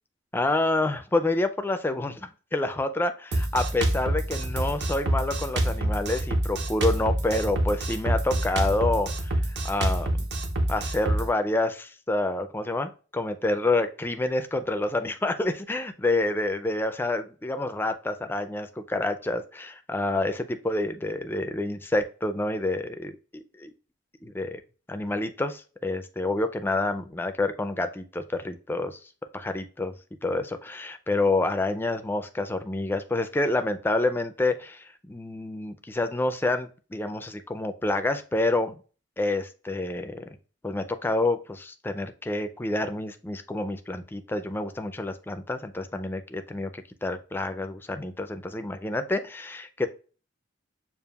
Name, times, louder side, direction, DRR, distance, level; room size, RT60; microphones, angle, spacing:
voice 1, 0.3-10.3 10.7-23.7 24.2-24.6 24.9-29.0 29.3-29.9 30.2-38.7 39.2-40.2 40.6-49.7, left 2 dB, 10° left, 8 dB, 0.3 m, -28 dB
Drum kit, 3.3-11.3, right 1 dB, 60° right, 0.6 m, -26 dB
6.7 x 2.4 x 2.3 m, 0.36 s
head